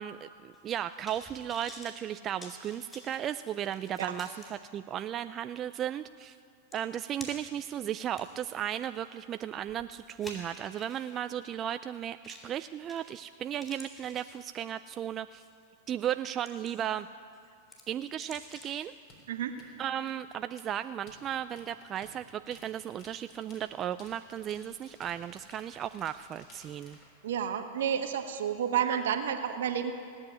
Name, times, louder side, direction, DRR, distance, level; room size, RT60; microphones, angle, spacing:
voice 1, 0.0-6.4 6.7-15.4 15.9-17.1 17.9-18.9 19.8-27.0, right 10 dB, 35° right, 10 dB, 0.3 m, -35 dB
sound 1, 0.5-4.5 5.0-5.1 6.3-6.4 6.7-7.6 8.1-11.2 12.2-12.6 12.9-13.3 13.6-14.9 15.4-15.6 16.1-17.0 17.3-18.9 19.2-19.3, left 2 dB, 15° left, 4.6 m, -50 dB
sound 2, 19.1-27.1, left 2 dB, 45° left, 4.2 m, -57 dB
voice 2, 27.2-29.9, right 8 dB, 75° right, 7 dB, 1.3 m, -30 dB
18.0 x 8.0 x 9.7 m, 2.4 s
hypercardioid pair, 110°, 0 cm